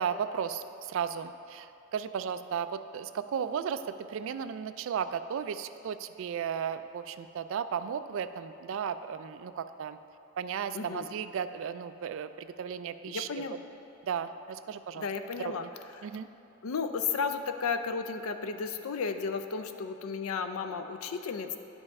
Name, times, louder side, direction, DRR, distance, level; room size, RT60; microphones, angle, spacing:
voice 1, 0.0-10.0 10.4-13.4 14.0-15.1 15.4-15.7 16.0-16.3, right 7 dB, 65° right, 11 dB, 0.3 m, -35 dB
voice 2, 10.7-11.1 13.1-13.6 15.0-15.7 16.6-21.6, left 5 dB, 85° left, 8 dB, 0.5 m, -33 dB
10.5 x 5.3 x 3.6 m, 2.8 s
head